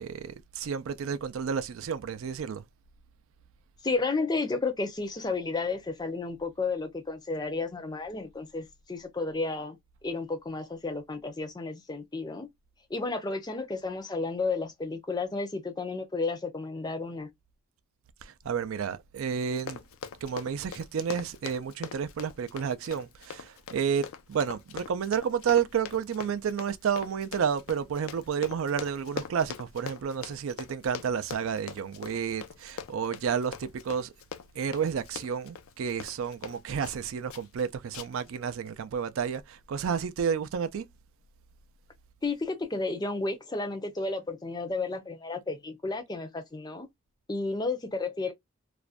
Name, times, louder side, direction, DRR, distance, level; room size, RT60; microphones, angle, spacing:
voice 1, 0.0-2.7 18.2-19.8 20.2-34.1 34.5-40.9, right 7 dB, 75° right, 0.4 m, -31 dB
voice 2, 3.8-9.8 10.0-12.5 12.9-17.3 42.2-46.9 47.3-48.3, left 3 dB, 20° left, 0.5 m, -32 dB
Run, 19.4-37.0 37.3-37.6 37.9-38.3 38.7-38.8, left 7 dB, 80° left, 0.4 m, -42 dB
2.4 x 2.1 x 2.3 m
head